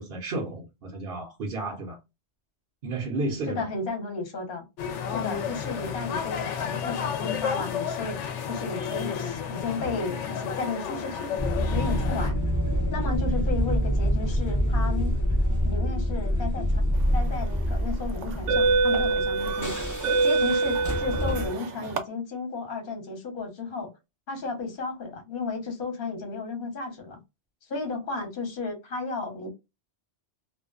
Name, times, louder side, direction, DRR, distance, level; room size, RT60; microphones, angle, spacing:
voice 1, 0.0-2.0 2.8-3.7, right 2 dB, 55° right, 0.8 m, -32 dB
voice 2, 3.5-4.7 5.1-8.2 8.5-12.4 12.9-15.1 15.6-16.8 17.1-19.7 20.2-23.9 24.3-27.2 27.7-29.5, left 3 dB, 50° left, 1.0 m, -33 dB
sound 1, 4.8-12.3, left 7 dB, 75° left, 0.9 m, -32 dB
sound 2, 11.4-21.5, equal, 25° left, 0.4 m, -26 dB
sound 3, 17.2-17.4 18.2-22.0, right 3 dB, 80° right, 1.0 m, -25 dB
2.5 x 2.1 x 2.3 m
omnidirectional pair, 1.2 m